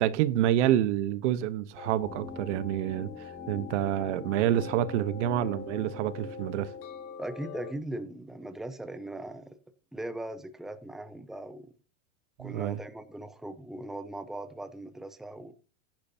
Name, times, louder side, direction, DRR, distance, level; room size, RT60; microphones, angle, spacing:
voice 1, 0.0-6.7 12.4-12.8, right 12 dB, 70° right, 1.0 m, -28 dB
sound 1, 1.8-7.7, left 7 dB, 80° left, 2.1 m, -44 dB
sound 2, 2.0-8.0 8.3-8.4, left 2 dB, 35° left, 2.9 m, -47 dB
voice 2, 7.2-9.6 9.9-11.7 12.4-15.5, right 1 dB, ahead, 0.9 m, -39 dB
15.0 x 10.5 x 2.8 m
supercardioid pair, 125°, 37 cm